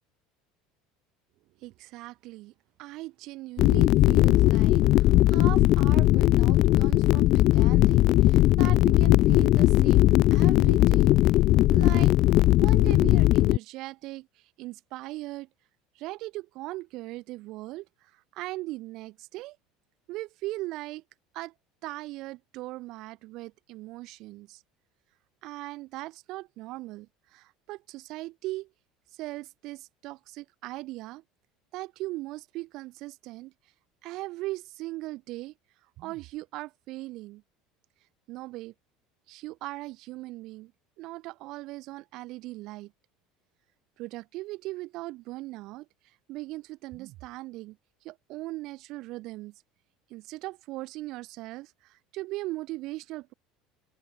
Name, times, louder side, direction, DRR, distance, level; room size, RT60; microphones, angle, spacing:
voice 1, 1.6-2.5 2.8-11.1 11.7-12.2 12.6-15.5 16.0-19.6 20.1-21.0 21.3-21.5 21.8-24.6 25.4-28.7 29.1-31.2 31.7-33.5 34.0-35.5 36.0-37.4 38.3-38.7 39.3-40.7 41.0-42.9 44.0-45.9 46.3-47.8 48.0-49.5 50.1-53.3, right 19 dB, 55° right, 7.5 m, -39 dB
sound 1, 3.6-13.6, left 16 dB, 50° left, 1.0 m, -19 dB
cardioid pair, 140°, 0 cm